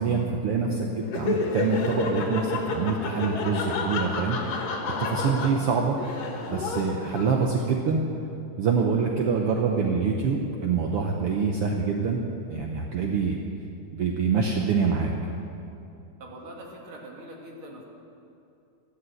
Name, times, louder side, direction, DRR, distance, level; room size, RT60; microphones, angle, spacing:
voice 1, 0.0-4.4 5.0-6.0 6.5-8.0 8.6-12.2 12.5-13.4 13.9-15.1, right 5 dB, 75° right, 1 dB, 1.3 m, -25 dB
Laughter, 1.0-7.6, left 4 dB, 75° left, 3.2 m, -30 dB
voice 2, 16.2-17.8, right 1 dB, 40° right, -1 dB, 2.8 m, -43 dB
14.0 x 12.0 x 7.9 m, 2.7 s
omnidirectional pair, 3.9 m